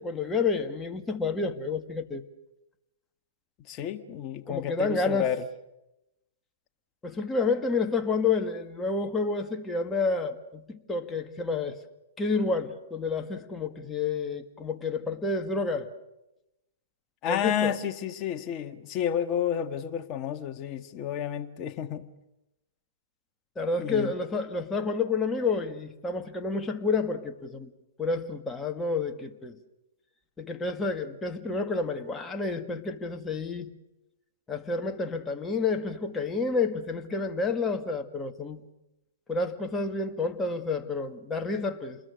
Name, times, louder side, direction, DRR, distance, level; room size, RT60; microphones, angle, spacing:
voice 1, 0.0-2.2 4.5-5.3 7.0-11.8 12.2-15.9 17.3-17.7 23.6-27.7 28.0-29.6 30.4-33.7 34.5-38.7 39.3-42.0, left 4 dB, 10° left, 2.0 m, -29 dB
voice 2, 3.7-5.5 17.2-22.0 23.8-24.1, left 9 dB, 30° left, 1.8 m, -31 dB
29.0 x 21.0 x 6.5 m
hypercardioid pair, 120°, 0 cm